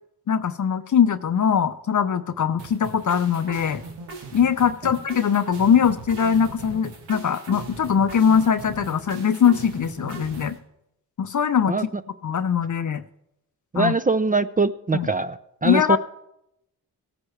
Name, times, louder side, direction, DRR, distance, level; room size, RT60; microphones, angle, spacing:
voice 1, 0.3-3.8 4.3-10.6 11.2-11.7 12.2-13.0 13.7-13.9 14.9-15.1 15.6-16.0, left 7 dB, 45° left, 11 dB, 0.6 m, -21 dB
sound 1, 2.6-10.6, right 4 dB, 90° right, 1.4 m, -39 dB
voice 2, 13.7-16.0, right 3 dB, 20° right, 12 dB, 0.5 m, -22 dB
17.0 x 9.6 x 3.2 m, 0.82 s
supercardioid pair, 45°, 42 cm